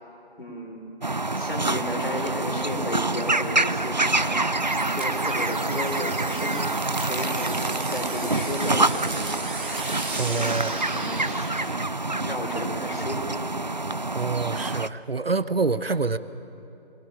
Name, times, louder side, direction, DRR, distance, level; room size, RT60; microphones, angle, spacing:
voice 1, 0.4-1.0 1.3-4.4 5.0-6.6 7.1-9.3 10.1-11.6 12.1-13.4, left 1 dB, 60° left, 2 dB, 4.8 m, -34 dB
sound 1, 1.0-14.9, right 2 dB, 45° right, 0.5 m, -27 dB
sound 2, 4.6-11.6, right 3 dB, 10° right, 1.4 m, -36 dB
voice 2, 10.2-10.7 14.1-16.2, right 4 dB, 65° right, 14 dB, 1.0 m, -26 dB
24.0 x 22.0 x 7.4 m, 2.8 s
figure-of-eight pair, 160°, 32 cm